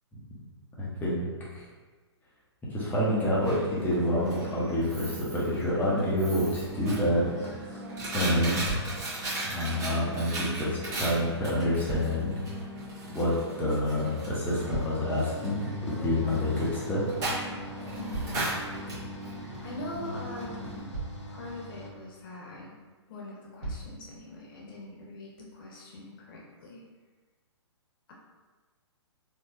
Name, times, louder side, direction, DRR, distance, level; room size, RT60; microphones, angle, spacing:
voice 1, 0.8-1.3 1.5-1.6 2.7-7.8 8.1-8.7 9.5-12.3 13.1-17.2 17.6-17.8, left 1 dB, 10° left, -7 dB, 1.0 m, -28 dB
Coin (dropping), 3.0-20.8, right 1 dB, 25° right, 1.2 m, -37 dB
sound 1, 8.6-9.1 11.5-12.4 14.2-15.3 18.1-19.1 20.3-20.4 20.9-21.4 22.8-22.9 23.6-24.0 24.8-24.9, right 3 dB, 65° right, 1.4 m, -37 dB
sound 2, 14.5-21.9, left 1 dB, 90° left, 0.6 m, -44 dB
voice 2, 17.9-18.5 19.6-20.9 21.3-22.7 23.1-26.8, left 2 dB, 50° left, -3 dB, 1.2 m, -42 dB
4.4 x 2.7 x 2.8 m, 1.3 s
hypercardioid pair, 130°, 15 cm